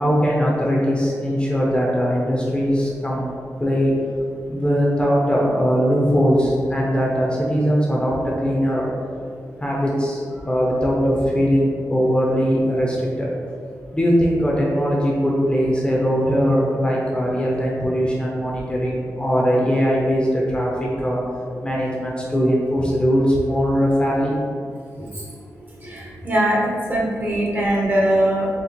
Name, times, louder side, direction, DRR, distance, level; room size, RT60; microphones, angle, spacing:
voice 1, 0.0-3.3 3.6-3.9 4.5-8.1 8.4-8.9 9.6-10.2 10.5-13.3 13.9-20.7 21.0-21.2 21.6-24.3, equal, 15° left, -4 dB, 0.8 m, -20 dB
voice 2, 25.8-28.5, right 1 dB, 30° right, -5 dB, 1.1 m, -21 dB
4.4 x 3.1 x 3.0 m, 2.3 s
cardioid pair, 65°, 6 cm